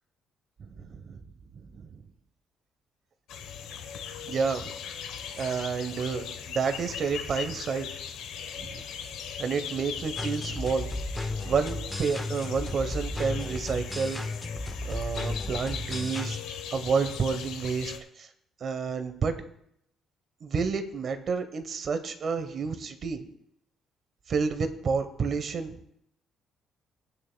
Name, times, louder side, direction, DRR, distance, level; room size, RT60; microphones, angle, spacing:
voice 1, 0.6-1.2 1.6-2.0 4.3-4.7 5.4-7.9 8.6-8.8 9.4-10.9 11.4-14.2 14.8-16.4 16.7-18.3 18.6-19.4 20.4-23.2 24.3-25.8, right 5 dB, 45° right, 9 dB, 0.9 m, -30 dB
sound 1, 3.3-18.0, left 8 dB, 90° left, 1.0 m, -39 dB
sound 2, 10.2-16.4, left 2 dB, 5° left, 0.6 m, -34 dB
17.0 x 9.1 x 2.2 m, 0.74 s
cardioid pair, 145°, 0 cm